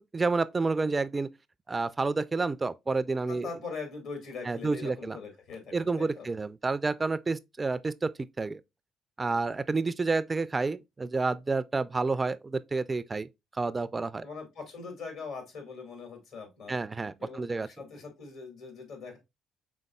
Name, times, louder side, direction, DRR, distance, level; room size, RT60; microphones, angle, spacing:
voice 1, 0.1-1.3 1.7-3.5 4.5-5.2 5.7-8.1 8.4-8.6 9.2-13.3 13.6-14.3 16.7-17.7, right 3 dB, 25° right, 0.3 m, -29 dB
voice 2, 3.3-6.3 14.2-16.8 17.2-19.2, left 4 dB, 70° left, 1.9 m, -42 dB
5.2 x 3.7 x 2.2 m
supercardioid pair, 70°, 0 cm